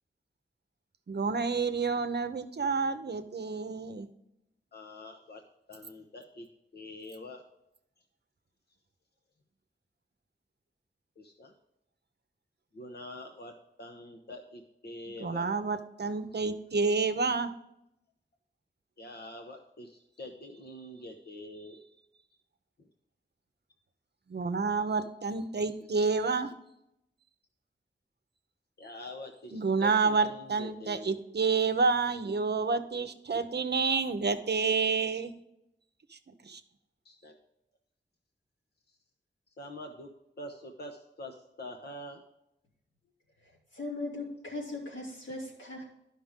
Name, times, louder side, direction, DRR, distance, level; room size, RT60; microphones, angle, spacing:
voice 1, 1.1-4.1 15.2-17.5 24.3-26.5 29.5-35.3 36.1-36.6, right 4 dB, 60° right, 10 dB, 0.7 m, -29 dB
voice 2, 4.7-5.4 5.7-6.5 6.7-7.4 11.2-11.5 12.7-15.5 19.0-21.8 22.8-22.9 28.8-31.2 37.0-37.3 39.6-40.1 40.4-42.2, left 1 dB, 60° left, 3 dB, 0.9 m, -45 dB
voice 3, 43.4-45.8, left 2 dB, 90° left, -4 dB, 3.1 m, -39 dB
11.5 x 5.8 x 3.6 m, 0.83 s
wide cardioid pair, 85°, 19 cm